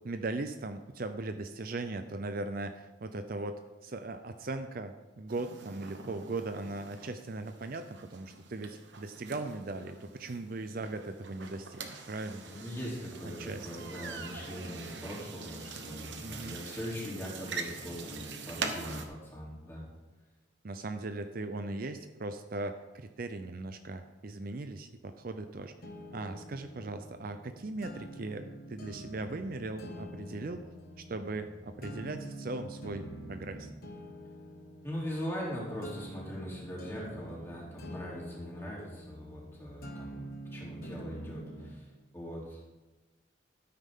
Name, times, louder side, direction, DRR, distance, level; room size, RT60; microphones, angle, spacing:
voice 1, 0.0-11.8 12.1-12.4 13.4-13.7 16.2-16.6 20.6-25.7 26.1-30.6 31.0-33.7, right 2 dB, 50° right, 8 dB, 0.5 m, -39 dB
sound 1, 5.3-19.1, right 4 dB, 65° right, 1.1 m, -43 dB
voice 2, 12.4-19.9 34.8-42.6, equal, 15° left, -5 dB, 3.2 m, -41 dB
sound 2, 25.8-41.8, equal, 50° left, 1.4 m, -46 dB
13.0 x 9.5 x 3.7 m, 1.1 s
head